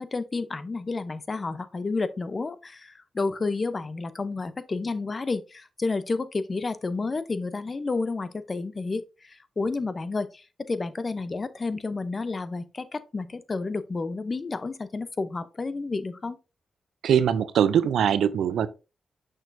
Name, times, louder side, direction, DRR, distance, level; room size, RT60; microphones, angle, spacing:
voice 1, 0.0-16.4, left 3 dB, 45° left, 0.7 m, -30 dB
voice 2, 17.0-18.7, right 8 dB, 80° right, 0.5 m, -22 dB
6.4 x 6.2 x 2.7 m
supercardioid pair, 50°, 0 cm